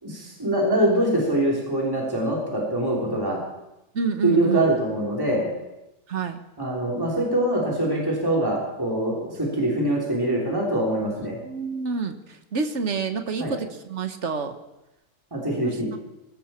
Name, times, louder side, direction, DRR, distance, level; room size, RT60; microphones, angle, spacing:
voice 1, 0.0-3.4 4.2-5.5 6.6-11.4 13.4-13.5 15.3-15.9, right 1 dB, 10° right, -3 dB, 3.4 m, -24 dB
voice 2, 3.9-4.6 6.1-6.4 11.4-14.5 15.6-15.8, right 5 dB, 50° right, 8 dB, 1.3 m, -28 dB
22.0 x 14.5 x 4.4 m, 0.93 s
omnidirectional pair, 1.8 m